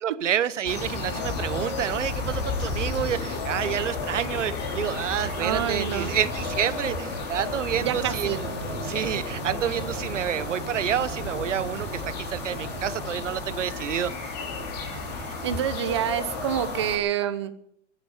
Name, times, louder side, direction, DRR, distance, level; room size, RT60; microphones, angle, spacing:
voice 1, 0.0-8.5 8.8-14.1, right 9 dB, 75° right, 16 dB, 1.1 m, -29 dB
sound 1, 0.6-17.0, left 3 dB, 35° left, 3.9 m, -32 dB
sound 2, 2.9-5.9, left 7 dB, 50° left, 6.6 m, -43 dB
voice 2, 5.4-6.1 7.8-8.4 15.4-17.5, right 10 dB, 25° right, 13 dB, 0.7 m, -27 dB
sound 3, 7.7-13.2, right 5 dB, 40° right, 6.3 m, -39 dB
19.5 x 9.9 x 7.2 m, 0.71 s
hypercardioid pair, 170°, 37 cm